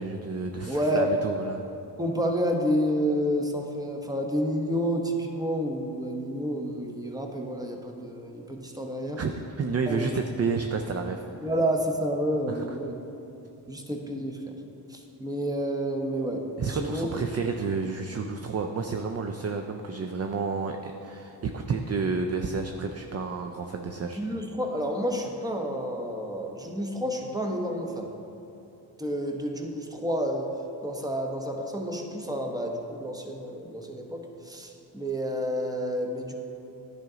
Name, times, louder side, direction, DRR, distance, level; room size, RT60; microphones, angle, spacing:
voice 1, 0.0-1.6 9.2-11.2 12.5-12.6 16.6-24.2, right 4 dB, 35° right, 5 dB, 0.5 m, -30 dB
voice 2, 0.7-1.1 2.0-9.2 9.9-10.1 11.4-12.9 13.7-14.5 14.9-16.4 16.7-17.1 24.1-28.1 29.0-30.5 30.8-36.3, equal, 10° right, 2 dB, 1.0 m, -29 dB
10.5 x 5.0 x 3.9 m, 2.7 s
cardioid pair, 65°, 44 cm